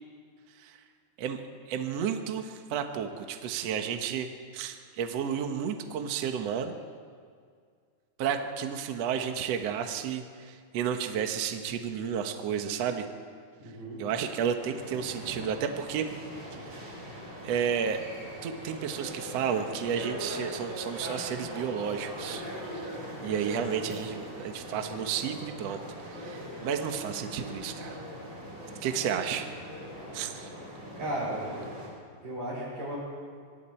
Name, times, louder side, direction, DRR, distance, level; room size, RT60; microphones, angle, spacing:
voice 1, 1.7-4.3 4.5-6.7 8.2-13.1 14.0-16.1 17.4-18.0 18.4-22.4 22.7-22.9 23.2-25.8 26.1-28.1 28.8-29.5 30.1-30.5, right 8 dB, 75° right, 5 dB, 1.5 m, -32 dB
voice 2, 13.6-14.0 31.0-31.5 32.2-33.0, right 1 dB, 50° right, -5 dB, 9.3 m, -34 dB
sound 1, 14.6-31.9, equal, 25° right, 7.3 m, -41 dB
24.5 x 24.0 x 4.4 m, 2.1 s
omnidirectional pair, 4.7 m